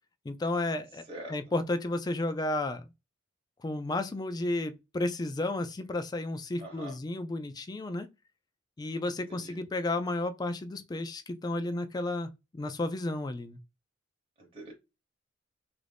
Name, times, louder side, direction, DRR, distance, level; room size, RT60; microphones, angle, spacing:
voice 1, 0.2-2.9 3.6-8.1 8.8-13.6, left 2 dB, 20° left, 0.3 m, -32 dB
voice 2, 6.6-7.0 9.3-9.6 14.4-14.8, right 1 dB, 30° right, 0.9 m, -44 dB
3.0 x 2.5 x 3.3 m
head